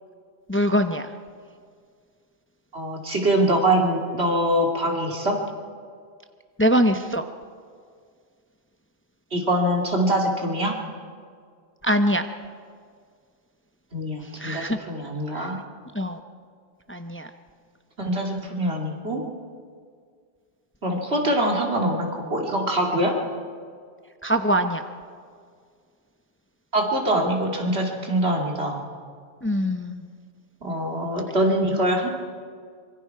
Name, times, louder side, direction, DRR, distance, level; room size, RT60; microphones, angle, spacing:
voice 1, 0.5-1.1 6.6-7.2 11.8-12.2 14.4-14.8 16.0-16.2 16.9-17.3 24.2-24.8 29.4-30.0, equal, 15° left, 7 dB, 0.7 m, -22 dB
voice 2, 2.7-5.4 9.3-10.8 13.9-15.6 18.0-19.2 20.8-23.1 26.7-28.8 30.6-32.1, right 1 dB, 85° right, 1 dB, 2.7 m, -24 dB
25.0 x 23.0 x 4.7 m, 2.1 s
omnidirectional pair, 1.1 m